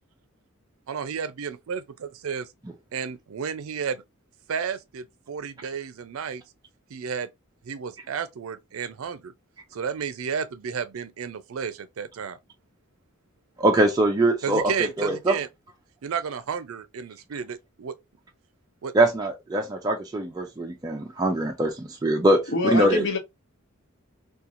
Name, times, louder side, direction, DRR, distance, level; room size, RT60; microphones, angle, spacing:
voice 1, 0.9-1.8 2.2-2.5 2.9-4.0 4.5-6.4 6.9-7.3 7.6-9.3 9.7-12.4 14.4-15.5 16.0-17.9 18.8-18.9, right 6 dB, 80° right, 0.4 m, -32 dB
voice 2, 13.6-15.4 18.9-23.0, right 1 dB, 20° right, 0.4 m, -23 dB
voice 3, 22.5-23.2, left 4 dB, 60° left, 0.7 m, -25 dB
2.9 x 2.3 x 2.5 m
head